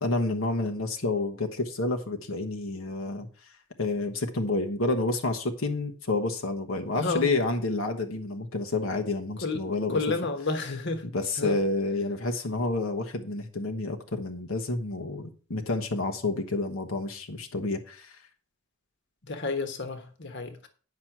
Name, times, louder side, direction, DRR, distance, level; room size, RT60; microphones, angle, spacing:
voice 1, 0.0-3.5 3.8-10.1 11.0-18.2, left 2 dB, 90° left, 1.2 m, -29 dB
voice 2, 6.9-7.3 9.4-9.6 9.9-11.0 11.4-11.6 19.3-20.7, left 3 dB, 60° left, 1.4 m, -30 dB
9.7 x 5.9 x 6.0 m
head